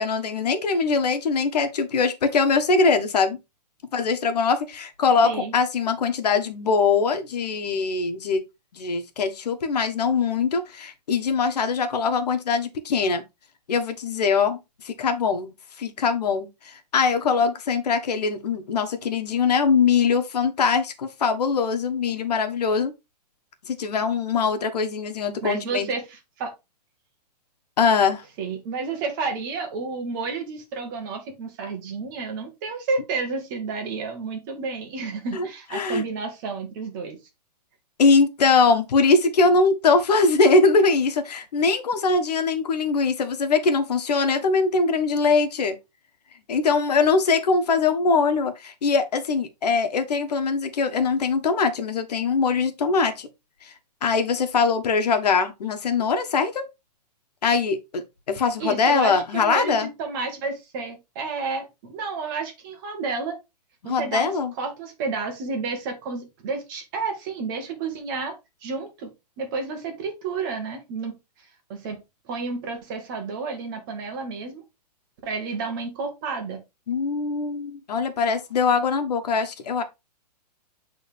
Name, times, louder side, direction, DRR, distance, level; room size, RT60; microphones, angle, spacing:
voice 1, 0.0-3.4 3.9-8.4 8.7-13.2 13.7-14.6 14.8-22.9 23.7-25.9 27.8-28.2 35.3-35.5 35.7-36.0 38.0-45.8 46.5-53.3 53.6-53.7 54.0-56.6 57.4-58.0 58.3-59.9 63.8-64.5 76.9-79.8, left 4 dB, 70° left, 1.4 m, -22 dB
voice 2, 25.4-26.5 28.4-37.2 58.6-63.4 63.8-68.3 68.6-69.1 69.4-71.2 71.7-72.0 72.3-74.6 75.2-76.6, right 4 dB, 30° right, 1.5 m, -31 dB
8.3 x 3.7 x 3.4 m
hypercardioid pair, 170°, 21 cm